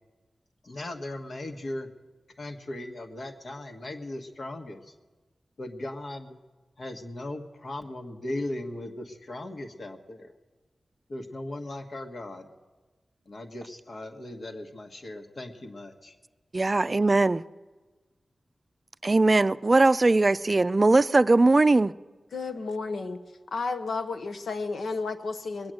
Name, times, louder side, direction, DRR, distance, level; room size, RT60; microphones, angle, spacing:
voice 1, 0.6-1.9 2.4-4.8 5.6-6.4 6.8-10.3 11.1-12.5 13.3-16.1, left 1 dB, 65° left, 1.4 m, -38 dB
voice 2, 16.5-17.4 19.0-21.9, right 2 dB, 40° right, 0.4 m, -20 dB
voice 3, 22.3-23.2 23.5-25.7, left 4 dB, 90° left, 0.9 m, -32 dB
21.0 x 8.8 x 7.8 m
cardioid pair, 55°, 0 cm